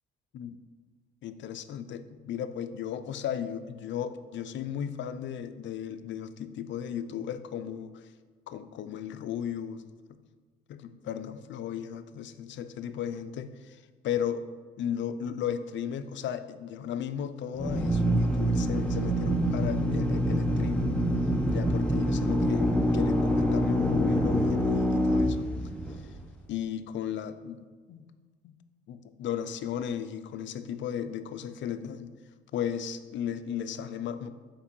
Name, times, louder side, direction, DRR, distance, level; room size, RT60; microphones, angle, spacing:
voice 1, 1.2-8.1 8.5-9.8 10.1-10.2 10.7-14.4 14.8-20.9 21.5-25.5 26.0-26.1 26.5-27.6 27.9-28.0 28.4-28.5 28.9-32.1 32.5-34.3, left 9 dB, 70° left, 11 dB, 0.5 m, -35 dB
Drill, 17.5-26.2, equal, 5° left, 0.7 m, -26 dB
5.2 x 4.4 x 5.3 m, 1.5 s
cardioid pair, 90°, 20 cm